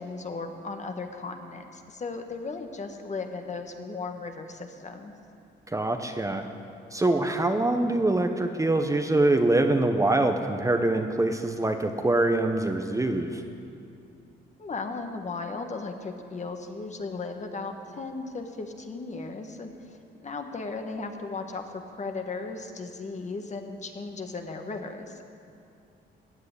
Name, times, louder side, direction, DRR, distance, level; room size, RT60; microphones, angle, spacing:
voice 1, 0.0-5.1 14.6-25.2, left 3 dB, 35° left, 5 dB, 1.5 m, -36 dB
voice 2, 5.7-6.4 6.9-13.4, right 2 dB, 15° right, 5 dB, 0.9 m, -24 dB
15.5 x 7.7 x 9.7 m, 2.5 s
cardioid pair, 90°, 20 cm